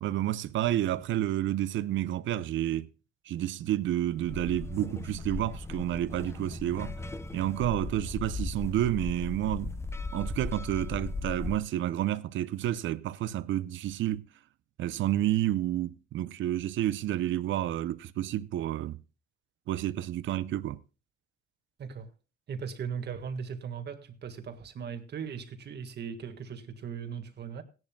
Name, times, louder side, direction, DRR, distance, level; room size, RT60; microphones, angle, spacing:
voice 1, 0.0-2.9 3.3-6.9 7.3-9.8 10.1-14.2 14.8-19.0 19.7-20.8, right 13 dB, 75° right, 0.6 m, -30 dB
sound 1, 4.1-11.6, left 3 dB, 15° left, 0.8 m, -37 dB
voice 2, 22.5-27.6, right 6 dB, 60° right, 1.7 m, -38 dB
17.0 x 10.5 x 2.2 m
cardioid pair, 90°, 20 cm